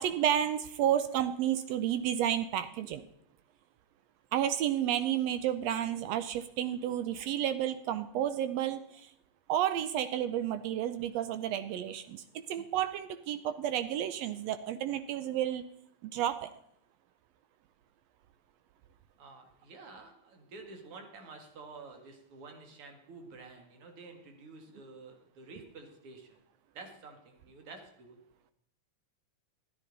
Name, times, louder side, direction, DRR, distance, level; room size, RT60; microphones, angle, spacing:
voice 1, 0.0-3.0 4.3-9.1 9.5-15.6 16.0-16.5, right 10 dB, 80° right, 12 dB, 1.5 m, -31 dB
voice 2, 19.2-26.4 26.7-28.2, right 3 dB, 50° right, 4 dB, 2.4 m, -50 dB
13.5 x 9.9 x 3.9 m, 0.77 s
omnidirectional pair, 3.4 m